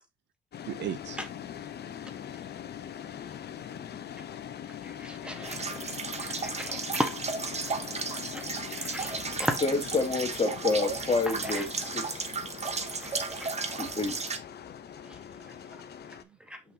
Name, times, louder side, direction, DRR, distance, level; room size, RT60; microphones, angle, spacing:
sound 1, 0.5-16.2, left 9 dB, 55° left, 0.8 m, -42 dB
voice 1, 0.7-1.2 2.0-2.1 3.5-4.2 5.8-6.5 16.2-16.4, right 11 dB, 65° right, 0.6 m, -41 dB
voice 2, 4.7-7.1 7.6-7.8 8.3-9.6 11.3-11.6 12.2-12.3 13.0-13.5 15.0-15.8 16.4-16.6, equal, 5° right, 1.5 m, -37 dB
sound 2, 5.4-14.4, right 4 dB, 35° right, 1.2 m, -34 dB
voice 3, 9.6-12.3 13.8-14.3, left 3 dB, 30° left, 2.2 m, -28 dB
5.9 x 5.8 x 2.9 m
cardioid pair, 90°, 20 cm